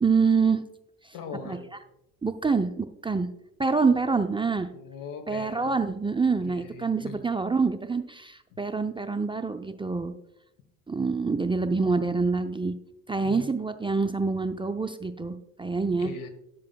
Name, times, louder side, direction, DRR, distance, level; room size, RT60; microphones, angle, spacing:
voice 1, 0.0-0.6 1.0-1.1 1.4-1.6 2.2-3.3 3.6-4.7 5.3-10.1 10.9-12.7 13.1-16.1, right 4 dB, 15° right, 7 dB, 0.5 m, -26 dB
voice 2, 1.1-1.6 4.7-5.7 6.4-7.2 13.2-13.5 16.0-16.3, left 5 dB, 65° left, 9 dB, 1.3 m, -40 dB
10.5 x 7.5 x 2.3 m, 0.84 s
hypercardioid pair, 60°, 35 cm